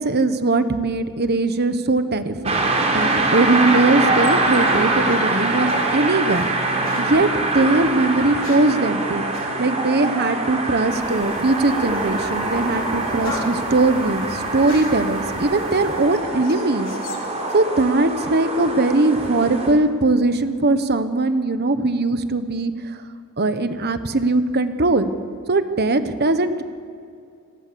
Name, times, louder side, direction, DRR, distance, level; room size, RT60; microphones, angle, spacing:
voice 1, 0.0-9.2 9.6-16.9 17.5-23.0 23.4-25.1 25.5-26.6, right 2 dB, 50° right, 10 dB, 1.2 m, -20 dB
sound 1, 2.5-19.7, right 2 dB, 30° right, 4.1 m, -24 dB
sound 2, 3.2-6.5 6.8-7.1 8.1-8.8 9.3-9.5 11.0-11.4 11.9-12.1 12.5-15.1 15.7-18.0 18.3-18.9, left 3 dB, 65° left, 3.6 m, -40 dB
sound 3, 10.9-16.3, left 1 dB, 20° left, 3.7 m, -36 dB
28.0 x 20.0 x 7.1 m, 2.4 s
head